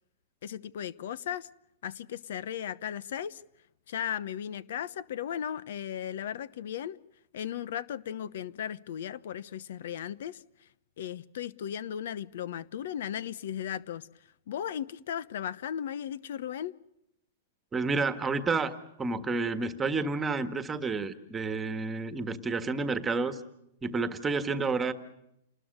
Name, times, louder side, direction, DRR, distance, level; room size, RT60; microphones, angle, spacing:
voice 1, 0.4-1.5 1.8-3.4 3.9-7.0 7.3-10.7 11.0-16.8, left 9 dB, 65° left, 18 dB, 1.0 m, -36 dB
voice 2, 17.7-23.4 23.8-24.9, right 4 dB, 10° right, 10 dB, 1.6 m, -30 dB
28.5 x 20.5 x 6.6 m, 0.78 s
hypercardioid pair, 155°, 0 cm